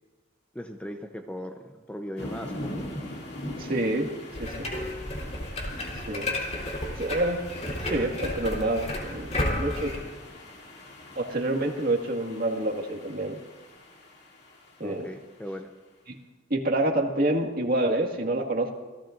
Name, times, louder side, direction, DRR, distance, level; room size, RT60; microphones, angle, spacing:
voice 1, 0.5-2.8 14.8-15.7, equal, 5° left, 4 dB, 0.7 m, -38 dB
sound 1, 2.2-15.6, left 1 dB, 60° left, 2.6 m, -42 dB
voice 2, 3.6-4.1 4.4-4.7 6.1-6.3 7.0-7.4 7.7-9.9 11.2-13.4 14.8-15.1 16.5-18.7, right 1 dB, 50° right, 1 dB, 1.9 m, -27 dB
sound 2, 4.3-10.0, left 1 dB, 35° left, 3.6 m, -32 dB
27.0 x 18.0 x 2.6 m, 1.3 s
head